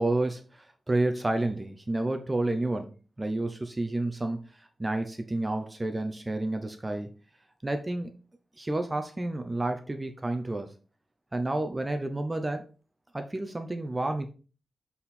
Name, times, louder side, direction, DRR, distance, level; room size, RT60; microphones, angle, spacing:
voice 1, 0.0-7.2 7.6-8.2 8.6-10.7 11.3-12.6 13.1-14.3, right 2 dB, 15° right, 6 dB, 0.6 m, -30 dB
7.6 x 4.2 x 4.2 m, 0.36 s
wide cardioid pair, 175°, 0 cm